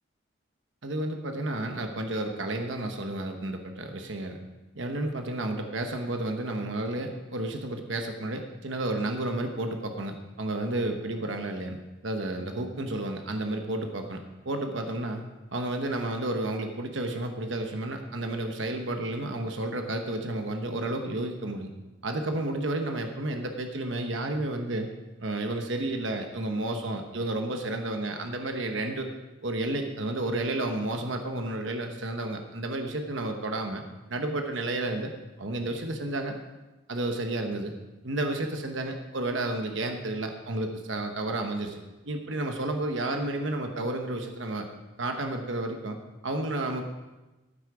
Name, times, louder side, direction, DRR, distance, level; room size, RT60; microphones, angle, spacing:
voice 1, 0.8-4.4 4.7-15.2 15.5-21.7 22.0-24.9 25.2-29.1 29.4-33.8 34.1-35.1 35.4-36.4 36.9-37.7 38.0-41.8 42.1-44.7 45.0-46.0 46.2-46.8, right 2 dB, 70° right, 5 dB, 1.1 m, -31 dB
14.5 x 8.4 x 4.9 m, 1.1 s
head